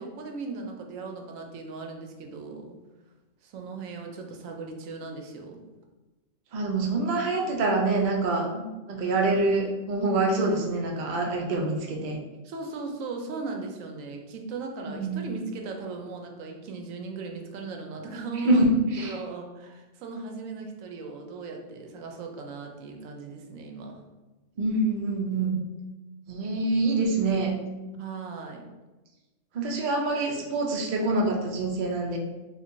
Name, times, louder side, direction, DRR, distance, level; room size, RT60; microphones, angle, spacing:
voice 1, 0.0-2.8 3.4-5.6 12.4-18.7 19.0-24.0 27.9-28.7, right 4 dB, 80° right, 3 dB, 1.0 m, -38 dB
voice 2, 6.5-12.2 14.9-15.3 18.4-19.2 24.6-25.6 26.3-27.6 29.5-32.2, right 2 dB, 55° right, 0 dB, 0.5 m, -25 dB
4.4 x 2.5 x 2.5 m, 1.1 s
omnidirectional pair, 1.4 m